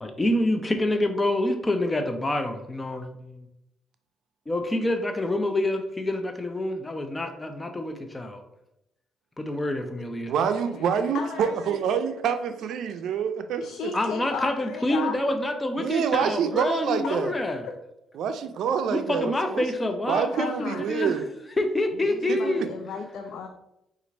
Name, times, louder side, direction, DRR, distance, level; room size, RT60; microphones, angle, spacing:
voice 1, 0.0-3.5 4.5-8.5 9.4-10.3 13.9-17.6 18.9-21.2 21.6-22.7, left 1 dB, 20° left, 6 dB, 0.5 m, -27 dB
voice 2, 10.3-13.9 15.8-17.3 18.2-19.7 20.1-21.3 22.3-22.6, right 7 dB, 75° right, 9 dB, 0.4 m, -26 dB
voice 3, 11.1-11.8 13.6-15.2 17.0-17.2 20.3-20.8 22.0-23.5, left 5 dB, 75° left, 4 dB, 0.4 m, -35 dB
4.4 x 2.5 x 4.0 m, 0.84 s
cardioid pair, 90°, 0 cm